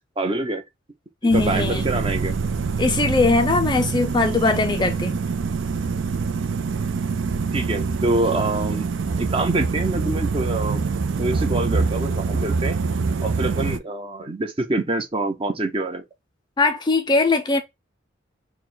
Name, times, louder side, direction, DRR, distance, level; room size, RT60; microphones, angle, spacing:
voice 1, 0.2-0.6 1.2-2.4 7.5-8.9 9.2-10.8 11.2-12.8 13.2-16.0, right 2 dB, 30° right, 0.8 m, -25 dB
voice 2, 1.2-1.9 2.8-5.2 16.6-17.6, left 3 dB, 20° left, 0.4 m, -20 dB
sound 1, 1.3-13.8, right 4 dB, 75° right, 0.5 m, -25 dB
4.6 x 2.2 x 3.9 m
head